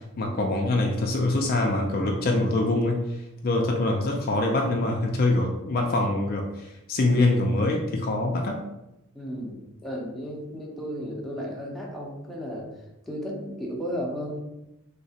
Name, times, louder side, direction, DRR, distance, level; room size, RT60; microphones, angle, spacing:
voice 1, 0.2-8.6, left 2 dB, 40° left, 1 dB, 0.4 m, -24 dB
voice 2, 9.1-12.7 13.1-14.4, equal, ahead, -3 dB, 0.6 m, -34 dB
3.3 x 2.9 x 2.8 m, 0.92 s
head